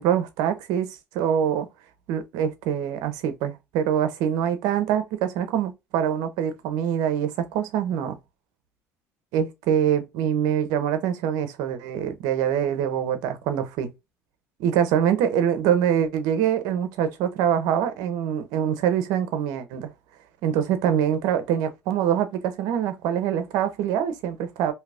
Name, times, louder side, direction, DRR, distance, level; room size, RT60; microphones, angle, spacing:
voice 1, 0.0-1.7 2.1-8.2 9.3-13.9 14.6-19.9 20.4-24.7, right 9 dB, 80° right, 0.8 m, -24 dB
2.8 x 2.4 x 3.4 m
supercardioid pair, 100°, 7 cm